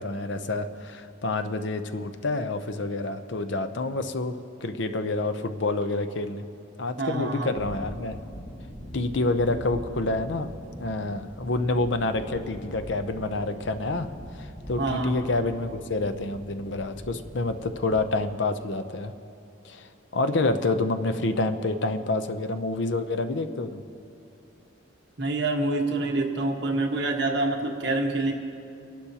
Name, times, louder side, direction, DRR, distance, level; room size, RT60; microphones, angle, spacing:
voice 1, 0.0-4.3 4.6-6.4 6.8-8.2 8.9-10.5 10.8-14.1 14.3-19.1 19.6-23.8, left 2 dB, 65° left, 9 dB, 0.6 m, -28 dB
voice 2, 7.0-7.5 14.8-15.1 25.2-28.3, right 2 dB, 55° right, 1 dB, 1.4 m, -26 dB
sound 1, 7.6-18.1, equal, 45° left, 2.1 m, -42 dB
28.0 x 11.5 x 2.9 m, 2.7 s
head